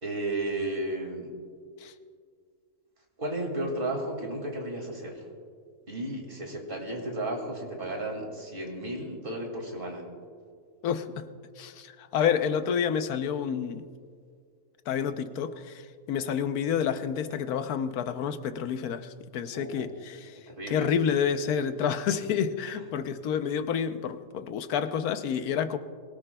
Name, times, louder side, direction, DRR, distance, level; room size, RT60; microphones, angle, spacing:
voice 1, 0.0-1.3 3.2-5.3 5.9-10.1 19.5-19.9 20.3-21.0, right 1 dB, 35° right, 1 dB, 2.3 m, -33 dB
voice 2, 10.8-11.3 11.6-13.8 14.9-20.4 20.7-25.8, left 7 dB, 90° left, 10 dB, 1.2 m, -29 dB
23.5 x 17.5 x 2.3 m, 2.1 s
omnidirectional pair, 1.5 m